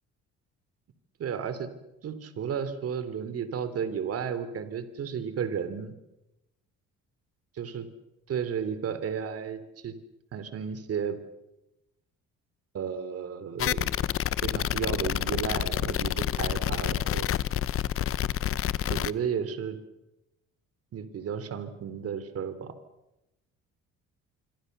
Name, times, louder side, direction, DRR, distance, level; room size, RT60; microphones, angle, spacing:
voice 1, 1.2-1.7 2.0-5.9 7.6-7.9 8.3-9.9 10.3-11.2 12.7-13.9 14.4-17.3 18.9-19.8 20.9-22.7, right 7 dB, 55° right, 12 dB, 3.3 m, -33 dB
sound 1, 13.6-19.1, left 11 dB, 50° left, 0.9 m, -28 dB
26.5 x 24.5 x 6.8 m, 0.92 s
cardioid pair, 90°, 29 cm